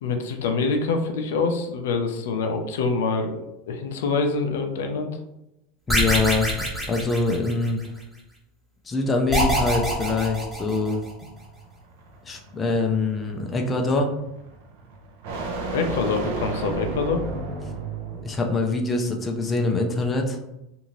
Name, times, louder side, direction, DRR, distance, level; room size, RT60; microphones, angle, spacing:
voice 1, 0.0-5.1 15.7-17.2, left 4 dB, 85° left, 4 dB, 0.5 m, -25 dB
voice 2, 5.9-6.5 6.9-7.8 8.9-11.0 12.2-14.1 18.1-20.4, left 3 dB, 20° left, 2 dB, 0.5 m, -24 dB
sound 1, 5.9-7.9 9.3-11.1, right 1 dB, 10° right, 1.2 m, -25 dB
sound 2, 11.4-18.4, right 3 dB, 70° right, 0.6 m, -33 dB
2.7 x 2.5 x 3.0 m, 0.87 s
supercardioid pair, 125°, 0 cm